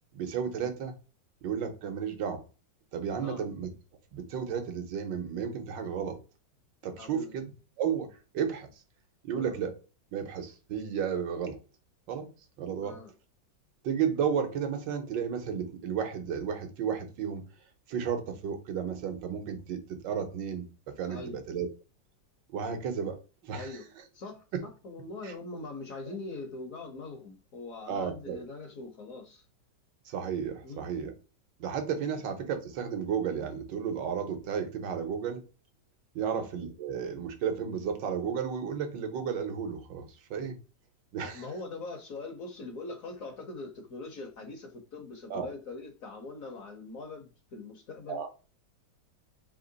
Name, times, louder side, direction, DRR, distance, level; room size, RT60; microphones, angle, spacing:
voice 1, 0.1-0.9 1.4-2.4 2.9-3.7 4.1-6.2 6.8-7.5 7.8-8.1 8.3-8.8 9.2-9.8 10.1-11.6 12.1-12.3 12.6-13.0 13.8-17.5 17.9-20.7 21.0-21.7 22.5-23.2 23.4-23.8 24.5-24.6 25.2-25.3 27.9-28.4 30.0-31.1 31.6-35.4 36.1-40.6 41.1-41.5 45.3-45.5 48.1-48.3, right 7 dB, 80° right, 1.5 m, -33 dB
voice 2, 7.0-7.3 9.3-9.5 12.8-13.1 21.1-21.4 23.6-23.9 24.1-29.4 30.6-30.9 36.2-36.5 41.2-48.2, left 3 dB, 60° left, 1.1 m, -42 dB
3.7 x 2.9 x 3.9 m
omnidirectional pair, 2.0 m